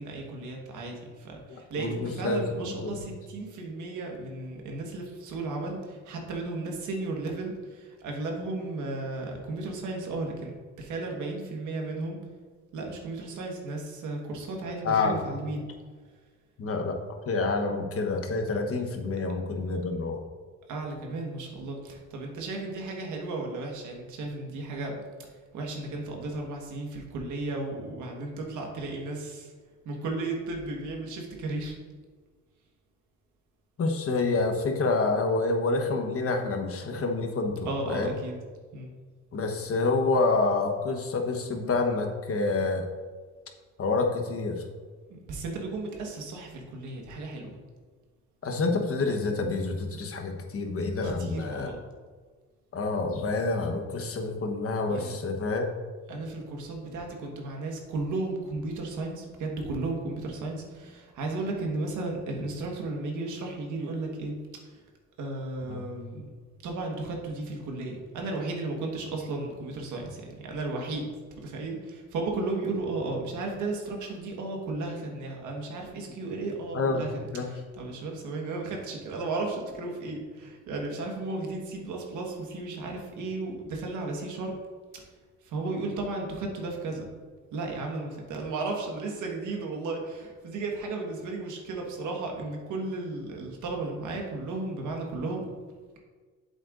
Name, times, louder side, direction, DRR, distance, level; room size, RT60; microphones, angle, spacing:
voice 1, 0.0-12.2 12.7-15.6 20.7-25.0 25.5-29.5 29.8-31.8 37.6-38.4 38.7-38.9 45.1-47.5 51.0-51.8 54.9-55.1 56.1-64.8 65.2-66.3 66.6-71.0 71.3-84.5 85.4-87.1 87.5-95.5, right 2 dB, 80° right, 1 dB, 1.5 m, -34 dB
voice 2, 1.5-2.9 14.8-15.2 16.6-17.0 17.3-20.2 33.8-38.1 39.3-42.8 43.8-44.6 48.4-51.7 52.7-55.7 65.7-65.8 76.7-77.5, left 3 dB, 50° left, 3 dB, 1.2 m, -28 dB
8.0 x 7.6 x 2.6 m, 1.5 s
cardioid pair, 90°, 30 cm